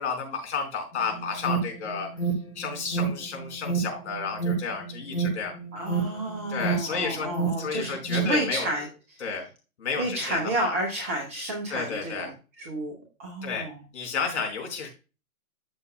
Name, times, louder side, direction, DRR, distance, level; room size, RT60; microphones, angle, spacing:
voice 1, 0.0-2.1 2.6-5.5 6.5-8.7 9.2-9.5 9.8-10.7 11.7-12.3 13.4-13.7 13.9-14.9, left 5 dB, 50° left, 2 dB, 4.5 m, -31 dB
Alarm, 0.9-8.4, right 4 dB, 90° left, 4.6 m, -30 dB
voice 2, 5.7-9.2 10.0-12.9 13.2-13.8, right 1 dB, 10° right, 1 dB, 0.5 m, -31 dB
13.5 x 5.8 x 2.2 m, 0.32 s
figure-of-eight pair, 130°, 44 cm